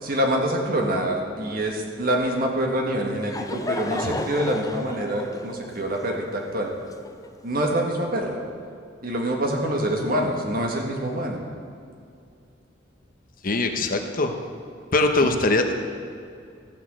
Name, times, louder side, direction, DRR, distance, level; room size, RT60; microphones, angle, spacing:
voice 1, 0.0-6.7 7.4-8.4 9.0-11.4, right 1 dB, 55° right, 1 dB, 1.7 m, -25 dB
Laughter / Crowd, 2.9-7.6, left 2 dB, 20° left, 0.6 m, -33 dB
voice 2, 13.4-14.3 14.9-15.7, left 2 dB, 50° left, 5 dB, 0.9 m, -22 dB
14.0 x 6.1 x 7.6 m, 2.4 s
head